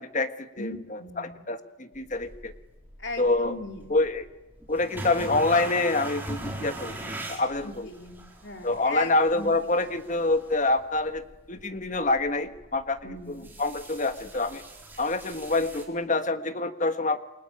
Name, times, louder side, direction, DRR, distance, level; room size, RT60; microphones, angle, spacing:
voice 1, 0.0-0.7 1.2-2.5 3.2-3.5 3.9-4.3 4.7-7.9 8.6-11.2 11.5-13.0 13.3-14.6 15.0-17.2, left 2 dB, 35° left, 9 dB, 1.5 m, -26 dB
voice 2, 0.6-1.5 3.0-4.0 7.6-9.5 13.0-13.5, left 2 dB, 55° left, 4 dB, 3.6 m, -38 dB
sound 1, 1.9-15.8, right 1 dB, 10° right, 4.4 m, -42 dB
28.5 x 23.5 x 8.8 m, 1.1 s
head